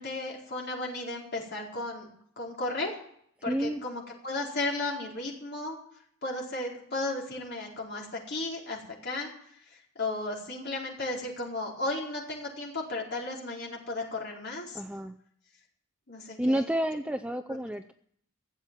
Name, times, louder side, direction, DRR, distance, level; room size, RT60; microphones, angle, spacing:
voice 1, 0.0-2.1 2.4-2.9 3.4-5.8 6.2-9.3 9.7-14.8 16.1-16.7 17.5-17.6, left 2 dB, 55° left, -2 dB, 4.5 m, -34 dB
voice 2, 3.5-3.8 14.7-15.2 16.4-17.9, right 1 dB, 5° right, 9 dB, 0.5 m, -30 dB
16.0 x 8.1 x 9.1 m, 0.66 s
head